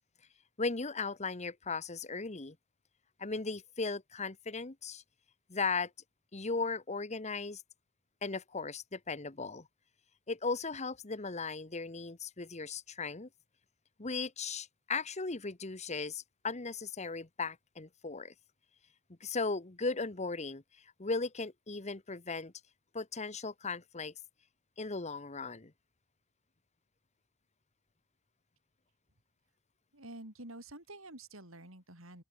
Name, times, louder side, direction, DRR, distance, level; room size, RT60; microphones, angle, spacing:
voice 1, 0.6-2.6 3.2-5.0 5.5-5.9 6.3-7.6 8.2-9.7 10.3-13.3 14.0-18.3 19.2-20.6 21.0-22.5 22.9-24.1 24.8-25.7, left 4 dB, 30° left, 1.3 m, -37 dB
voice 2, 29.9-32.2, right 1 dB, 65° right, 7.4 m, -49 dB
open air
head